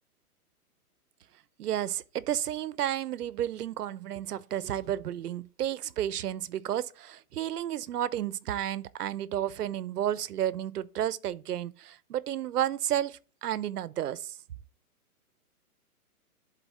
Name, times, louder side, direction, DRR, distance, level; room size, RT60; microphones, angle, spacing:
voice 1, 1.6-14.4, right 11 dB, 85° right, 0.7 m, -32 dB
11.0 x 4.0 x 4.1 m
hypercardioid pair, 170°, 45 cm